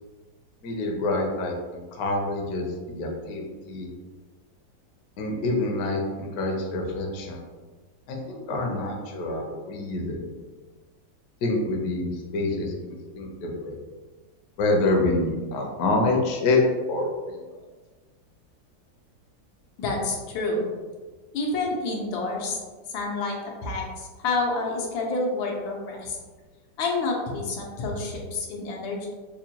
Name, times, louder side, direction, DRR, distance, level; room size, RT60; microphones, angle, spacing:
voice 1, 0.6-3.9 5.2-7.4 8.1-10.2 11.4-13.7 14.6-16.6 16.9-17.4, left 2 dB, 65° left, 0 dB, 1.0 m, -27 dB
voice 2, 19.8-20.6 21.3-22.6 22.9-26.2 26.8-29.1, left 3 dB, 85° left, -1 dB, 1.5 m, -28 dB
4.7 x 2.2 x 2.8 m, 1.3 s
omnidirectional pair, 2.1 m